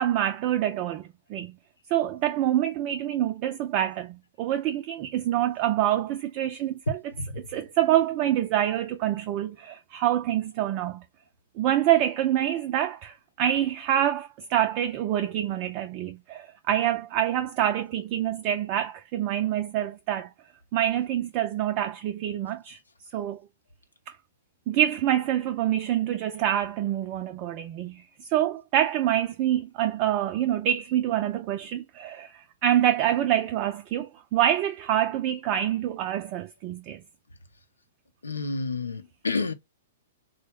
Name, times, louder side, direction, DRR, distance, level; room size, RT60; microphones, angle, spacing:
voice 1, 0.0-1.5 1.9-11.0 11.6-20.3 20.7-22.8 23.1-23.4 24.1-24.2 24.7-37.0, right 12 dB, 40° right, 0.4 m, -26 dB
voice 2, 38.2-39.5, left 3 dB, 80° left, 0.6 m, -29 dB
3.2 x 2.1 x 3.4 m
figure-of-eight pair, 110°, 0 cm